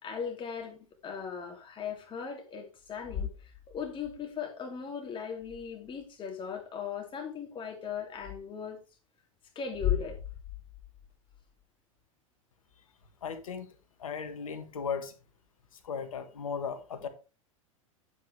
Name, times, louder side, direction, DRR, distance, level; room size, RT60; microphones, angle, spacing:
voice 1, 0.0-8.8 9.5-10.2, left 6 dB, 30° left, 2.8 m, -39 dB
sound 1, 2.8-4.2 5.4-6.1 8.2-8.4 9.7-11.6, left 10 dB, 50° left, 1.6 m, -37 dB
voice 2, 13.2-15.1 15.7-17.1, left 6 dB, 75° left, 1.7 m, -37 dB
9.2 x 8.5 x 3.4 m
hypercardioid pair, 95°, 18 cm